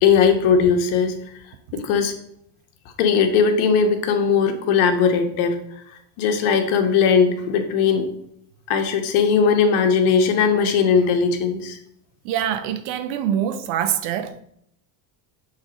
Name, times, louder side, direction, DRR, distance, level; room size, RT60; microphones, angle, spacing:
voice 1, 0.0-1.1 1.7-2.1 3.0-5.6 6.2-8.1 8.7-11.8, left 6 dB, 70° left, 1.3 m, -18 dB
voice 2, 12.2-14.4, right 10 dB, 85° right, 0.8 m, -24 dB
6.5 x 3.4 x 5.0 m
supercardioid pair, 110°, 50 cm